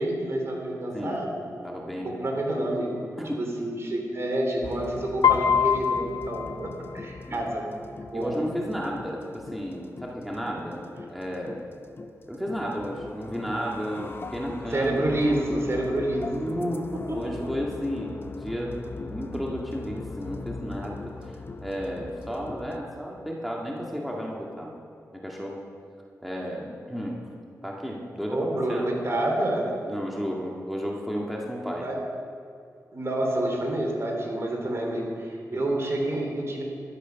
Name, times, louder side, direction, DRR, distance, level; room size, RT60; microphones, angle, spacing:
voice 1, 0.0-1.4 2.0-3.0 3.4-7.6 8.0-8.4 14.7-16.4 28.3-29.7 31.8-32.0 32.9-36.6, right 1 dB, 45° right, 0 dB, 3.2 m, -28 dB
voice 2, 1.6-2.1 3.2-3.4 7.3-7.4 8.1-10.8 11.1-11.6 12.3-15.2 16.2-21.4 21.6-24.7 25.1-25.6 26.2-27.2 27.6-28.9 29.9-31.8 35.5-35.6, equal, ahead, -3 dB, 2.0 m, -33 dB
sound 1, 4.6-22.8, left 3 dB, 35° left, 0.7 m, -41 dB
Piano, 5.2-7.3, left 8 dB, 80° left, 0.7 m, -24 dB
13.0 x 11.5 x 5.8 m, 2.3 s
cardioid pair, 65°, 6 cm